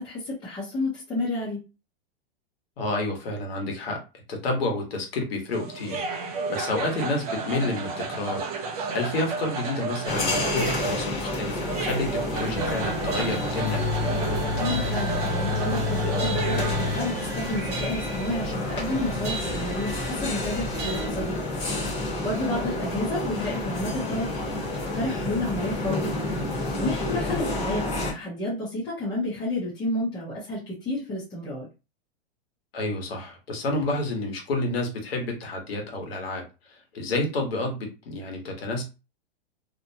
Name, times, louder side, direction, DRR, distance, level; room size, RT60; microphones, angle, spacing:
voice 1, 0.0-1.6 14.6-21.4 21.7-24.3 24.9-26.2 26.5-31.7, left 1 dB, 15° left, -7 dB, 0.6 m, -31 dB
voice 2, 2.8-4.0 4.3-8.4 8.9-13.8 27.2-27.4 32.7-36.4 36.9-38.8, left 2 dB, 80° left, 2 dB, 1.2 m, -29 dB
sound 1, 5.5-17.1, right 4 dB, 40° right, 0.5 m, -32 dB
sound 2, 10.1-28.1, left 2 dB, 30° left, 1.0 m, -30 dB
sound 3, 12.5-21.1, left 2 dB, 25° right, 1.2 m, -31 dB
2.8 x 2.1 x 2.7 m, 0.28 s
supercardioid pair, 165°, 30 cm